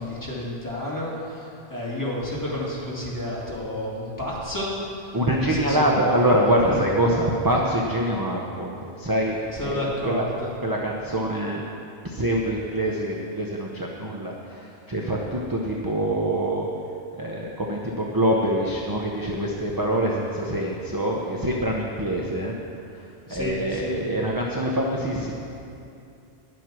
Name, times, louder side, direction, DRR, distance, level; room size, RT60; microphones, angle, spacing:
voice 1, 0.0-5.0 5.4-6.3 6.6-6.8 9.6-10.5 23.3-24.0, left 1 dB, 15° left, -6 dB, 2.3 m, -30 dB
voice 2, 5.1-10.3 10.6-11.6 12.0-16.7 17.2-22.5 22.8-25.3, right 1 dB, 20° right, -2 dB, 0.8 m, -25 dB
11.0 x 7.5 x 6.2 m, 2.6 s
omnidirectional pair, 1.1 m